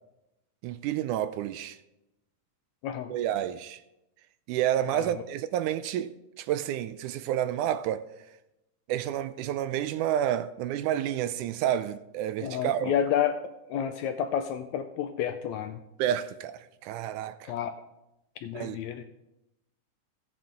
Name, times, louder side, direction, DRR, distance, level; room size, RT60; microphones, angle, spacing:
voice 1, 0.6-1.8 3.1-3.8 4.5-8.1 8.9-12.9 16.0-17.5 18.5-18.8, right 11 dB, 80° right, 1.9 m, -30 dB
voice 2, 2.8-3.1 4.9-5.2 12.4-13.3 13.7-15.8 17.5-17.7 18.4-19.0, left 9 dB, 80° left, 1.7 m, -30 dB
15.5 x 9.0 x 3.8 m
omnidirectional pair, 3.7 m